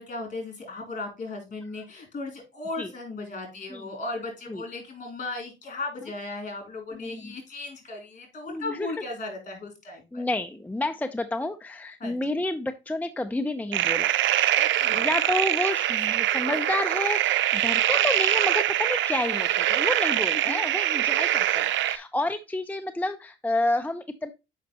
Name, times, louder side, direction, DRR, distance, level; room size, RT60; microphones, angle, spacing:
voice 1, 0.0-10.2 12.0-12.2 14.6-15.1 20.3-20.6, left 3 dB, 40° left, 3 dB, 4.1 m, -36 dB
voice 2, 7.0-7.3 8.5-8.9 10.1-14.2 14.9-24.3, left 2 dB, 10° left, 7 dB, 0.6 m, -30 dB
sound 1, 13.7-22.0, right 12 dB, 70° right, 0.6 m, -24 dB
6.5 x 5.5 x 4.1 m, 0.26 s
cardioid pair, 90°, 20 cm